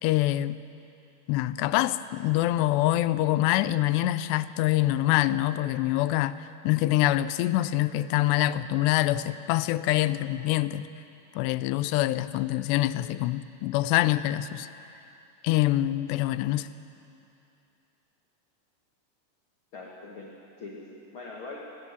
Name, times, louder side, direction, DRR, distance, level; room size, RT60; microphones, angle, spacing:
voice 1, 0.0-0.6 1.3-10.9 11.4-14.7 15.4-16.7, left 15 dB, 85° left, 14 dB, 2.7 m, -25 dB
voice 2, 19.7-21.6, left 3 dB, 60° left, -2 dB, 1.3 m, -42 dB
18.5 x 16.0 x 9.7 m, 2.8 s
omnidirectional pair, 5.0 m